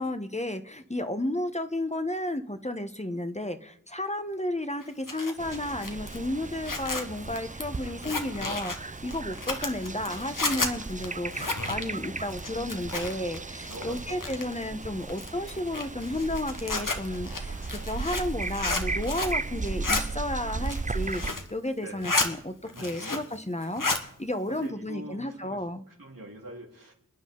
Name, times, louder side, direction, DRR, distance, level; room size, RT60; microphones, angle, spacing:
voice 1, 0.0-17.6 17.8-22.5 22.8-25.8, left 1 dB, 20° left, 8 dB, 1.1 m, -32 dB
Zipper (clothing), 4.8-13.4 13.6-14.6 15.1-19.4 19.7-20.0 20.5-21.5 21.8-22.3 22.7-23.4 23.6-24.0, left 3 dB, 75° left, 1.6 m, -32 dB
sound 1, 5.4-21.3, right 3 dB, 25° right, 0.5 m, -36 dB
voice 2, 13.6-14.6 17.4-17.9 21.8-22.0 22.7-23.1 23.6-23.8 24.4-25.6 25.9-26.9, right 1 dB, 85° right, -2 dB, 3.5 m, -45 dB
27.0 x 9.8 x 3.9 m, 0.67 s
wide cardioid pair, 40°, 32 cm